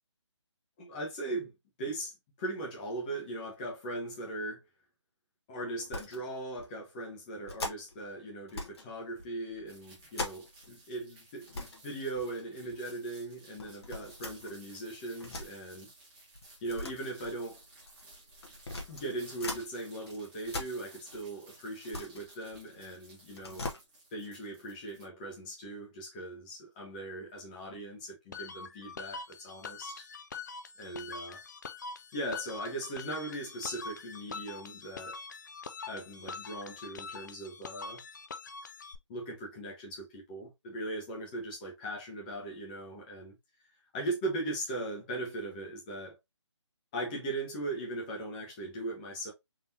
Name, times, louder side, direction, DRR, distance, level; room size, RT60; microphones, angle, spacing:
voice 1, 0.8-1.5 1.8-4.7 5.5-15.9 16.6-17.6 18.9-23.7 24.1-30.1 30.8-31.4 32.1-35.2 35.9-38.0 39.1-43.4 43.9-46.2 46.9-49.3, right 2 dB, 15° left, 1.1 m, -39 dB
sound 1, 5.8-6.2 6.6-6.7 7.5-8.0 8.5-8.9 9.2-10.7 11.0-11.1 11.4-11.8 12.2-12.8 13.6-15.5 16.3-19.7 20.0-21.3 21.6-22.9 23.3-23.8, left 2 dB, 55° left, 1.3 m, -41 dB
sound 2, 9.7-25.0, right 2 dB, 20° right, 1.4 m, -56 dB
sound 3, 28.3-39.0, left 4 dB, 40° left, 0.4 m, -44 dB
3.9 x 2.9 x 2.8 m
hypercardioid pair, 165°, 16 cm